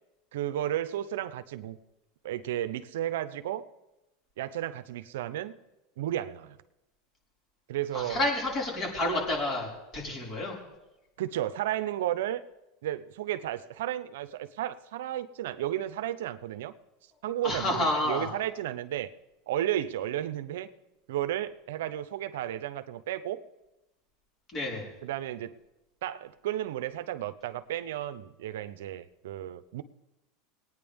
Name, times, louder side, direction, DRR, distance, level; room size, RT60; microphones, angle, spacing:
voice 1, 0.3-1.8 2.2-3.7 4.4-5.6 6.0-6.6 7.7-8.2 11.2-12.4 12.8-16.7 17.2-19.1 19.5-20.7 21.1-23.4 25.0-25.6 26.0-29.8, right 12 dB, 80° right, 11 dB, 0.7 m, -33 dB
voice 2, 7.9-10.6 17.4-18.3 24.5-24.8, left 1 dB, 35° left, -3 dB, 5.1 m, -29 dB
21.0 x 9.4 x 3.5 m, 0.97 s
supercardioid pair, 125°, 0 cm